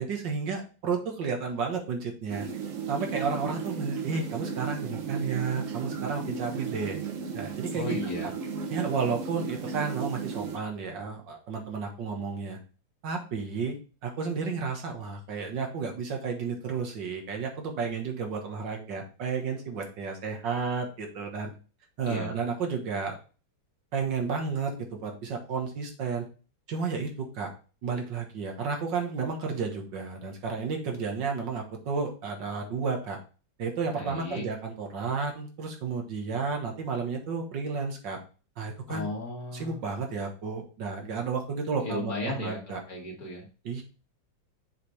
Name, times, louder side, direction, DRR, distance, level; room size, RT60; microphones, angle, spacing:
voice 1, 0.0-2.5 2.9-7.0 7.3-8.0 8.7-12.6 13.0-13.8 14.0-21.5 22.0-23.2 23.9-26.3 26.7-27.5 27.8-33.2 33.6-38.2 38.6-39.1 39.5-42.8 43.7-43.8, right 5 dB, 75° right, 2 dB, 2.0 m, -32 dB
sound 1, 2.3-10.6, right 6 dB, 55° right, 1.1 m, -35 dB
voice 2, 7.7-8.3 22.1-22.3 34.0-34.5 38.9-39.8 41.8-43.5, left 2 dB, 50° left, -1 dB, 2.3 m, -35 dB
6.8 x 5.1 x 3.3 m, 0.36 s
omnidirectional pair, 2.0 m